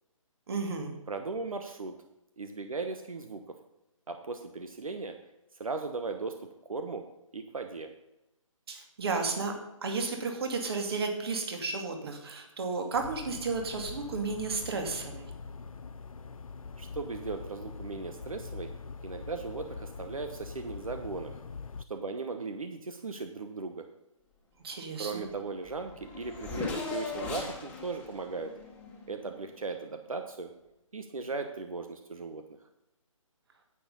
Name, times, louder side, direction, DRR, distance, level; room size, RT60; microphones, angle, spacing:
voice 1, 0.5-0.9 8.7-9.5 9.8-15.3 24.6-25.2, right 4 dB, 45° right, 4 dB, 2.3 m, -33 dB
voice 2, 1.1-1.9 2.4-3.4 4.1-5.2 5.5-7.0 7.3-7.9 16.8-18.7 19.0-21.4 21.9-23.8 25.0-28.5 29.1-30.5 30.9-32.4, right 4 dB, 80° right, 6 dB, 1.2 m, -37 dB
sound 1, 12.9-21.8, left 4 dB, 80° left, 0.7 m, -43 dB
Race car auto racing / Accelerating revving vroom, 25.3-25.4 25.6-29.6, left 4 dB, 5° left, 1.5 m, -39 dB
10.0 x 8.9 x 5.4 m, 0.93 s
figure-of-eight pair, 155°, 17 cm